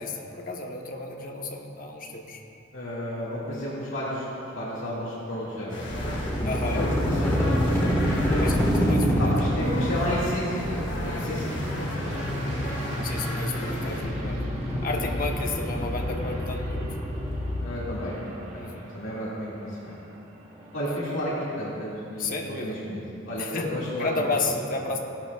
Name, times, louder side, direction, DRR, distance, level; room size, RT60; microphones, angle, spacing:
voice 1, 0.0-2.4 6.4-6.8 8.4-8.5 8.8-9.2 11.1-11.2 13.0-14.4 14.8-16.9 18.5-18.9 22.2-22.8 23.4-23.7 24.0-25.0, left 3 dB, 45° left, 1 dB, 1.1 m, -32 dB
voice 2, 2.7-8.5 9.2-12.6 14.7-15.2 17.6-18.2 18.4-18.6 18.9-20.0 20.7-24.4, equal, 80° left, -8 dB, 2.1 m, -32 dB
sound 1, 4.8-21.6, right 1 dB, 35° right, 1.5 m, -41 dB
sound 2, 5.7-14.0, left 1 dB, 60° left, 2.3 m, -36 dB
sound 3, 5.9-17.6, equal, 15° left, 1.5 m, -27 dB
16.0 x 11.5 x 2.4 m, 2.9 s
head